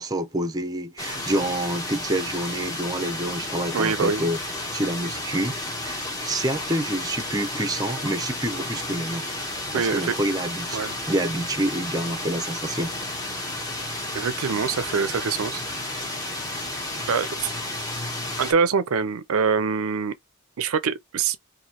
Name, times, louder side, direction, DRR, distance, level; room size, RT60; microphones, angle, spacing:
voice 1, 0.0-4.4 4.7-9.3 9.7-12.9, right 1 dB, 15° right, 0.5 m, -28 dB
sound 1, 1.0-18.5, left 1 dB, 15° left, 0.9 m, -32 dB
voice 2, 3.7-4.2 9.7-10.1 10.7-10.9 14.1-15.7 17.1-17.5 18.4-20.1 20.6-21.4, right 5 dB, 70° right, 0.5 m, -24 dB
3.0 x 2.6 x 4.1 m
head